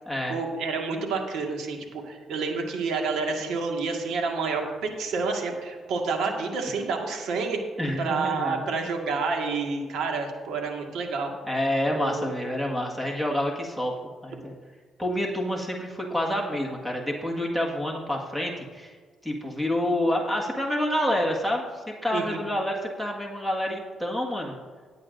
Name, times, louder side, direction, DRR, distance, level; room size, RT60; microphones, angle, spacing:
voice 1, 0.3-4.6 5.0-7.6 8.0-11.3 11.9-12.4 22.1-22.4, right 4 dB, 80° right, 2 dB, 1.7 m, -29 dB
voice 2, 7.8-8.9 11.5-13.9 14.2-14.5 15.0-18.9 19.2-24.5, left 1 dB, 5° right, -1 dB, 1.7 m, -28 dB
17.0 x 8.6 x 2.6 m, 1.5 s
cardioid pair, 90°, 0 cm